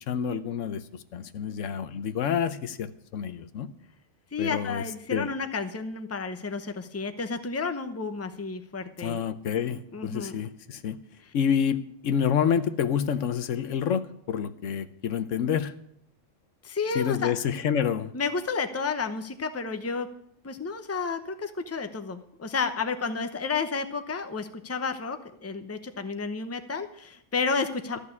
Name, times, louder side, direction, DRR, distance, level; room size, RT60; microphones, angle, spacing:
voice 1, 0.1-0.8 1.1-3.7 4.4-4.8 5.1-5.3 9.0-11.0 11.3-15.7 16.9-18.1, left 8 dB, 75° left, 12 dB, 1.1 m, -28 dB
voice 2, 4.3-9.2 9.9-10.3 16.6-17.3 18.1-20.1 20.4-28.0, left 4 dB, 15° left, 8 dB, 0.7 m, -31 dB
13.5 x 6.7 x 9.7 m, 0.72 s
omnidirectional pair, 1.3 m